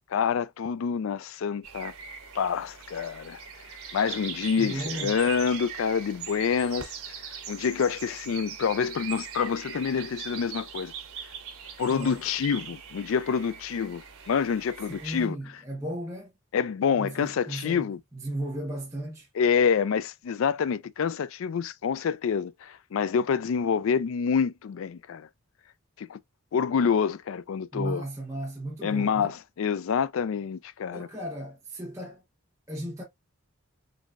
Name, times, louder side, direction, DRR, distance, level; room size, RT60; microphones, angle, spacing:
voice 1, 0.1-1.9 2.3-3.4 3.9-6.9 7.5-10.9 11.8-15.4 16.5-18.0 19.4-25.3 26.0-26.2 26.5-28.0 28.8-31.1, left 6 dB, 70° left, 0.3 m, -27 dB
sound 1, 1.6-15.3, right 7 dB, 85° right, 1.1 m, -41 dB
voice 2, 4.6-5.2 11.9-12.2 14.9-16.3 16.9-19.3 27.7-29.3 30.9-32.2 32.7-33.0, right 1 dB, 15° right, 0.9 m, -35 dB
3.9 x 3.5 x 2.3 m
head